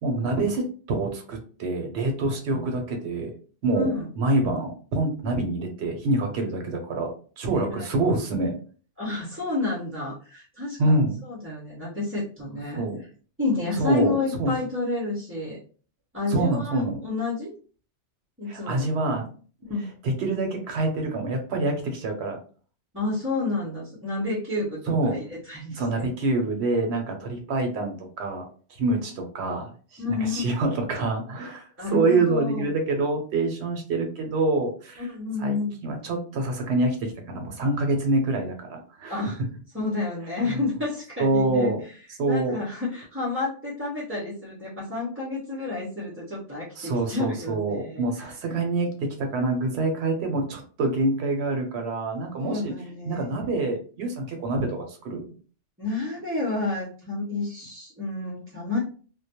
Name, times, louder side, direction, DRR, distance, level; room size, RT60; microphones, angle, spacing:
voice 1, 0.0-3.3 3.6-3.9 4.2-7.1 7.4-8.6 10.8-11.2 12.8-13.0 13.8-14.5 16.3-17.0 18.5-19.3 20.0-22.4 24.9-25.2 25.8-28.5 28.8-31.6 31.9-35.1 35.4-35.6 35.8-39.2 40.4-40.6 41.2-41.8 42.2-42.6 46.8-52.7 53.1-55.2, right 2 dB, 70° right, 4 dB, 0.8 m, -26 dB
voice 2, 3.7-4.1 7.5-7.9 9.0-13.1 13.4-15.6 16.1-17.5 18.4-19.0 19.7-19.9 22.9-26.1 30.0-30.5 31.8-32.7 35.0-35.7 39.1-39.4 39.7-42.0 42.3-48.3 52.4-53.3 55.8-58.8, left 3 dB, 15° right, -6 dB, 0.4 m, -30 dB
2.2 x 2.1 x 2.7 m, 0.40 s
omnidirectional pair, 1.2 m